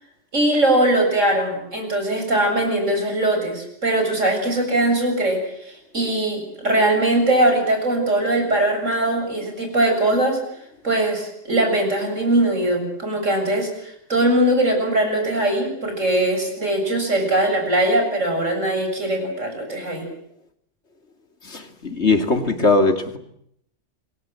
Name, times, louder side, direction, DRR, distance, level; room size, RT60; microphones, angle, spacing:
voice 1, 0.3-10.4 10.8-20.1, right 1 dB, 90° right, 3 dB, 8.0 m, -21 dB
voice 2, 21.4-23.2, left 3 dB, 60° left, 6 dB, 3.1 m, -20 dB
28.0 x 23.0 x 7.8 m, 0.71 s
omnidirectional pair, 1.3 m